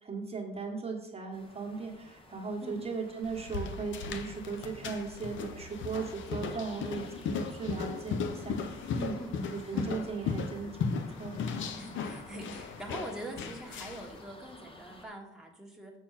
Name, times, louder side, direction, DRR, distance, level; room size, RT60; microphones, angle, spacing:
voice 1, 0.0-9.2 9.5-11.4, right 4 dB, 30° right, 0 dB, 1.5 m, -38 dB
sound 1, 1.3-15.1, left 1 dB, 25° left, 1.4 m, -54 dB
sound 2, 3.2-14.1, left 5 dB, 75° left, 0.8 m, -37 dB
voice 2, 11.8-15.9, right 1 dB, ahead, -2 dB, 1.5 m, -43 dB
7.2 x 4.4 x 5.7 m, 0.86 s
cardioid pair, 90°, 20 cm